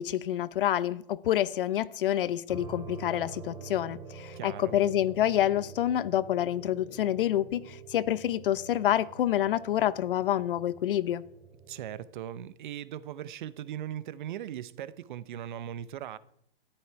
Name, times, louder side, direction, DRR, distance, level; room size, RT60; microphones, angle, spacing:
voice 1, 0.0-11.2, left 12 dB, 65° left, 0.8 m, -28 dB
sound 1, 2.5-12.0, right 6 dB, 10° right, 2.5 m, -47 dB
voice 2, 4.3-4.8 11.7-16.2, right 11 dB, 55° right, 0.8 m, -39 dB
13.5 x 11.5 x 4.6 m
hypercardioid pair, 155°, 29 cm